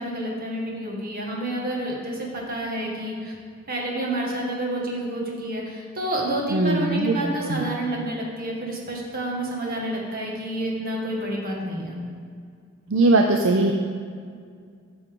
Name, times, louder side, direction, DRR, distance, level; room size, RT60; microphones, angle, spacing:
voice 1, 0.0-3.3 3.7-12.0, right 1 dB, 45° right, -2 dB, 1.9 m, -29 dB
voice 2, 6.5-7.2 7.4-7.7 12.9-13.7, right 2 dB, 65° right, 3 dB, 0.6 m, -20 dB
14.0 x 6.1 x 3.8 m, 2.1 s
head